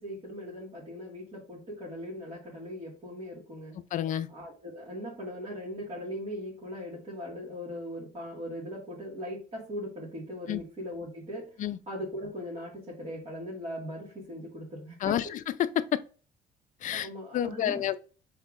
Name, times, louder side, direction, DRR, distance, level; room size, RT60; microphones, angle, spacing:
voice 1, 0.0-3.8 4.3-15.2 16.9-17.8, equal, 35° right, 1.9 m, -39 dB
voice 2, 3.9-4.3 10.5-10.6 11.6-11.8 15.0-15.3 15.8-16.0 16.8-17.1 17.3-18.0, left 11 dB, 50° left, 0.4 m, -29 dB
5.5 x 3.5 x 2.5 m
cardioid pair, 110°, 17 cm